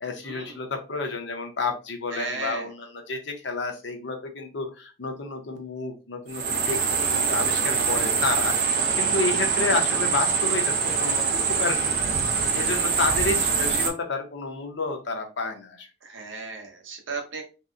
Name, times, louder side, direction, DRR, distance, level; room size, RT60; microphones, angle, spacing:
voice 1, 0.0-11.9 12.5-15.9, left 3 dB, 65° left, 4 dB, 0.6 m, -30 dB
voice 2, 2.1-2.7 16.0-17.4, right 4 dB, 80° right, 3 dB, 0.8 m, -35 dB
sound 1, 6.3-13.9, right 5 dB, 55° right, 0.5 m, -24 dB
2.7 x 2.1 x 2.4 m, 0.31 s
head